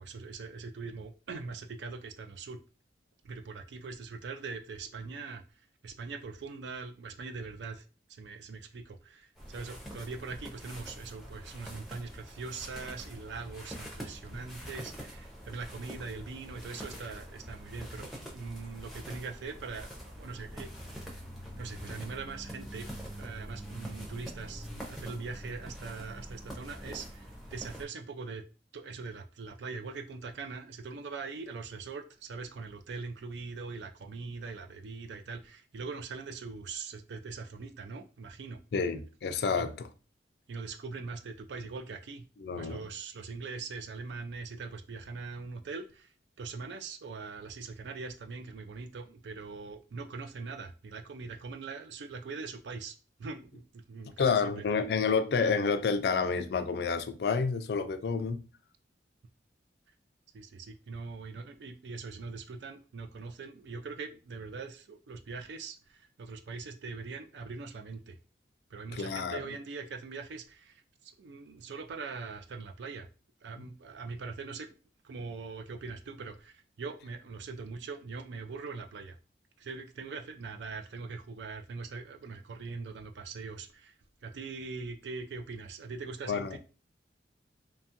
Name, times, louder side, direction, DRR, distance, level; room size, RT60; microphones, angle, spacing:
voice 1, 0.0-2.6 3.2-7.8 8.1-21.1 21.6-22.9 23.2-28.4 28.7-38.6 39.6-39.7 40.5-42.2 42.6-54.8 60.3-68.2 68.7-73.1 73.4-74.8 75.0-79.2 79.6-83.9 84.2-86.6, right 4 dB, 75° right, 0.4 m, -42 dB
sound 1, 9.4-27.8, equal, ahead, 0.5 m, -45 dB
voice 2, 38.7-39.9 42.4-42.8 54.2-58.5 69.0-69.4 73.6-73.7 86.3-86.6, left 5 dB, 60° left, 0.3 m, -29 dB
2.8 x 2.3 x 2.8 m
head